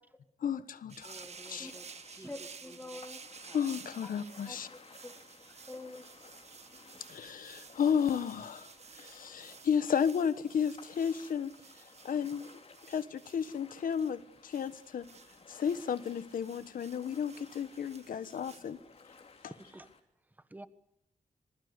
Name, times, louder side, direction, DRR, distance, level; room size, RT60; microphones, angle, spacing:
voice 1, 0.4-1.7 3.5-4.7 7.1-8.7 8.9-11.5 12.0-12.5 12.9-15.1 15.5-18.8 19.4-19.5, left 7 dB, 85° left, 1.3 m, -33 dB
sound 1, 0.9-18.7, right 6 dB, 50° right, 1.7 m, -53 dB
Ocean, 1.0-20.0, left 4 dB, 45° left, 3.3 m, -58 dB
voice 2, 1.0-1.9 2.2-2.3 2.7-3.0 3.5-3.6 19.5-19.9 20.5-20.7, right 2 dB, 10° right, 1.3 m, -51 dB
voice 3, 2.1-3.2 4.5-7.2, left 2 dB, 15° left, 2.9 m, -49 dB
26.5 x 21.0 x 8.2 m
wide cardioid pair, 155°, 14 cm